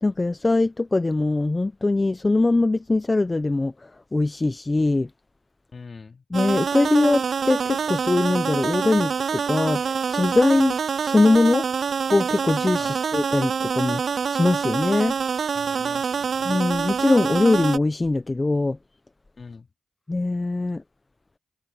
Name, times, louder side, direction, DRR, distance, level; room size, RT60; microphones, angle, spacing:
voice 1, 0.0-3.7 4.1-5.1 6.3-11.6 12.1-14.0 14.3-15.1 16.4-18.8 20.1-20.8, left 2 dB, 30° left, 1.0 m, -22 dB
voice 2, 5.7-6.3 12.8-13.0 15.4-16.5 19.4-19.7, left 4 dB, 55° left, 2.9 m, -43 dB
sound 1, 6.3-17.8, right 6 dB, 70° right, 0.3 m, -26 dB
supercardioid pair, 40°, 0 cm